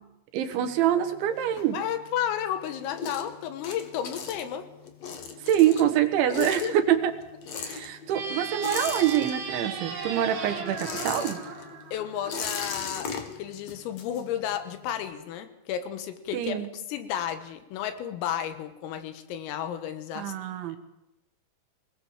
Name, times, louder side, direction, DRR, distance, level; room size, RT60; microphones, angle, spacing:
voice 1, 0.3-1.8 5.4-7.1 7.6-11.4 16.3-16.7 20.2-20.8, right 11 dB, 70° right, 8 dB, 3.6 m, -25 dB
sound 1, 0.6-2.2 2.6-9.8 10.0-14.7, left 5 dB, 60° left, 1.8 m, -38 dB
voice 2, 1.7-4.6 6.4-6.7 11.9-20.3, left 10 dB, 85° left, 9 dB, 4.1 m, -32 dB
sound 2, 8.1-12.5, right 5 dB, 50° right, 4.5 m, -36 dB
24.5 x 20.5 x 7.4 m, 0.87 s
omnidirectional pair, 5.9 m